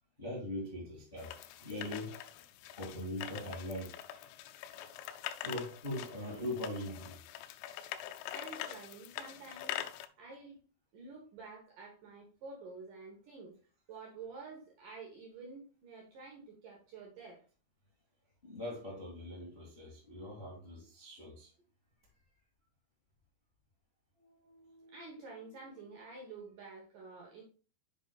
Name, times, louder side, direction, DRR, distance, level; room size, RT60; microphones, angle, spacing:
voice 1, 0.2-2.4 2.7-4.3 4.7-5.1 5.4-7.2 18.4-21.5, left 1 dB, 70° left, -5 dB, 0.5 m, -42 dB
sound 1, 1.2-10.1, left 12 dB, 85° left, 3.0 m, -44 dB
voice 2, 8.3-9.9 10.2-10.6 10.9-13.5 13.9-17.4 22.1-22.2 24.2-27.4, right 4 dB, 70° right, -2 dB, 2.0 m, -50 dB
7.8 x 6.3 x 2.4 m, 0.37 s
omnidirectional pair, 5.5 m